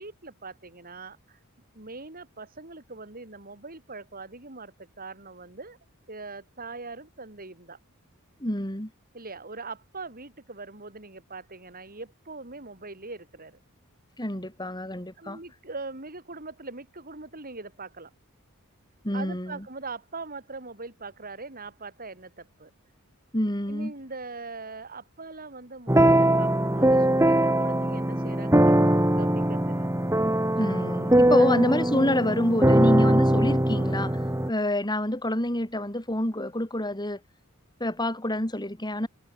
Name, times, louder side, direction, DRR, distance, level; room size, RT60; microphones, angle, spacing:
voice 1, 0.0-1.4 1.7-5.8 6.1-7.8 9.1-13.6 15.2-18.1 19.1-22.7 23.7-29.9 31.4-31.5, right 3 dB, 40° right, 6.4 m, -41 dB
voice 2, 8.4-8.9 14.2-15.4 19.0-19.6 23.3-23.9 30.6-34.2 34.5-37.2 37.8-39.1, left 1 dB, 20° left, 6.4 m, -27 dB
sound 1, 25.9-34.5, right 1 dB, 15° right, 2.7 m, -21 dB
head